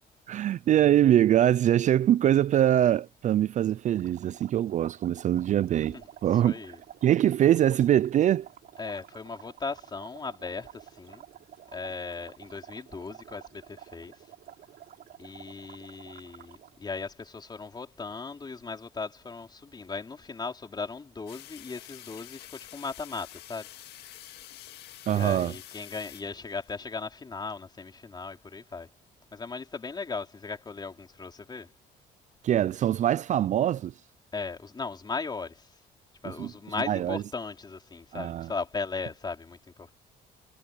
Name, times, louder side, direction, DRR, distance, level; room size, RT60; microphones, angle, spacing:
voice 1, 0.3-6.6 7.0-8.5 25.1-25.5 32.4-33.9 36.4-36.5 36.9-37.2 38.1-38.5, right 11 dB, 45° right, 0.4 m, -23 dB
sound 1, 4.0-16.8, right 11 dB, 65° right, 5.4 m, -51 dB
voice 2, 6.4-6.8 8.8-11.2 11.7-14.1 15.2-23.7 25.1-28.9 29.3-31.7 34.3-35.7 36.2-39.9, left 4 dB, 25° left, 4.3 m, -37 dB
sound 2, 21.3-26.8, left 14 dB, 80° left, 2.0 m, -48 dB
cardioid pair, 110°, 17 cm